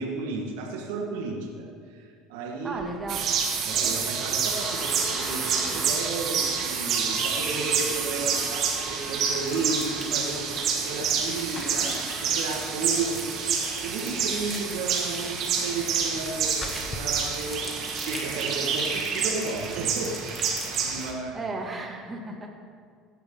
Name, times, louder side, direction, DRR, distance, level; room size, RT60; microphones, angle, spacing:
voice 1, 0.0-2.8 3.6-13.5 13.8-21.4, right 3 dB, 85° right, 1 dB, 1.9 m, -33 dB
voice 2, 2.6-3.3 21.3-22.5, right 2 dB, 20° right, 0 dB, 2.6 m, -35 dB
sound 1, 2.7-17.0, left 3 dB, 30° left, 1.6 m, -43 dB
sound 2, 3.1-21.1, right 6 dB, 55° right, 2.3 m, -28 dB
sound 3, 9.5-10.3 10.8-21.1, equal, ahead, 2.8 m, -43 dB
16.5 x 11.5 x 4.0 m, 2.1 s
supercardioid pair, 105°, 0 cm